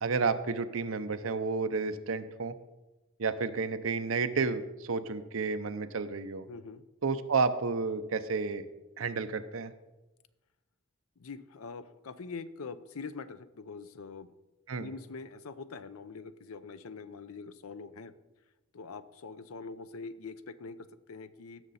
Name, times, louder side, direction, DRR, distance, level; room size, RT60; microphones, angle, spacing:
voice 1, 0.0-2.6 3.2-6.4 7.0-8.7 9.0-9.7 14.7-14.9, right 4 dB, 75° right, 11 dB, 0.7 m, -31 dB
voice 2, 6.5-6.8 11.2-14.4 14.8-18.1 18.7-21.7, left 4 dB, 90° left, 13 dB, 0.6 m, -44 dB
16.5 x 6.6 x 4.2 m, 1.1 s
head